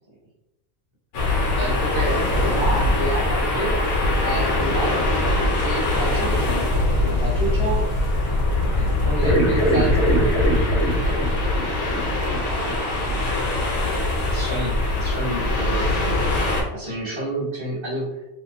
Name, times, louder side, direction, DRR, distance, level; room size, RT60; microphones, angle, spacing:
sound 1, 1.1-16.6, left 2 dB, 60° left, 1.1 m, -22 dB
voice 1, 1.6-4.0 4.2-5.1 5.6-6.7 7.0-7.8 8.2-10.3 12.2-13.0 14.2-15.8 16.7-18.2, right 1 dB, 20° right, -6 dB, 1.1 m, -29 dB
sound 2, 5.8-11.1, right 2 dB, 80° right, 1.0 m, -39 dB
sound 3, 9.2-13.5 13.8-13.9 15.9-16.0 16.4-16.5, right 1 dB, 40° left, 1.2 m, -25 dB
3.2 x 2.9 x 2.7 m, 0.95 s
omnidirectional pair, 1.5 m